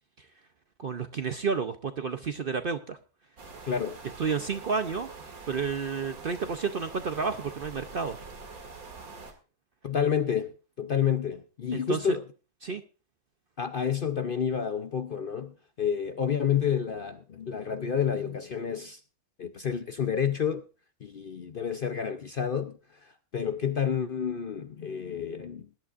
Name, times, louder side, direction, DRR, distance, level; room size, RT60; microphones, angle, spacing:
voice 1, 0.8-3.0 4.2-5.1 5.5-8.2 11.7-12.2 12.6-12.8, right 5 dB, 50° right, 0.7 m, -31 dB
sound 1, 3.4-9.3, right 4 dB, 70° right, 2.4 m, -44 dB
voice 2, 3.7-4.0 9.8-12.2 13.6-19.0 19.4-20.6 21.0-25.7, left 7 dB, 50° left, 0.7 m, -29 dB
20.0 x 11.0 x 2.5 m
omnidirectional pair, 1.6 m